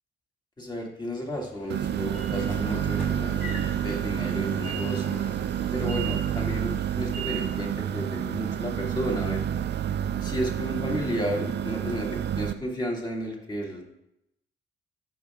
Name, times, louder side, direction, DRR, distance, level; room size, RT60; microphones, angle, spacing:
voice 1, 0.6-5.2 5.7-9.4 10.2-13.8, equal, 20° left, -1 dB, 2.4 m, -32 dB
Train / Sliding door, 1.3-7.8, right 2 dB, 40° left, 3.1 m, -40 dB
sound 1, 1.7-12.5, right 9 dB, 60° right, 0.5 m, -29 dB
12.0 x 5.8 x 3.7 m, 0.86 s
cardioid pair, 90°, 20 cm